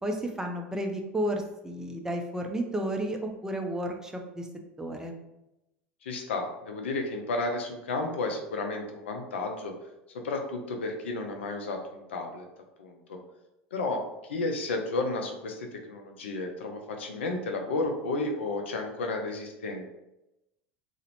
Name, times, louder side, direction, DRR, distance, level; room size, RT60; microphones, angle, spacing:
voice 1, 0.0-4.5 4.8-5.1, right 1 dB, 10° right, 3 dB, 0.4 m, -32 dB
voice 2, 6.0-9.7 10.2-12.5 12.8-13.2 13.7-19.9, left 2 dB, 85° left, 3 dB, 0.4 m, -32 dB
2.4 x 2.0 x 2.9 m, 0.93 s
hypercardioid pair, 85°, 6 cm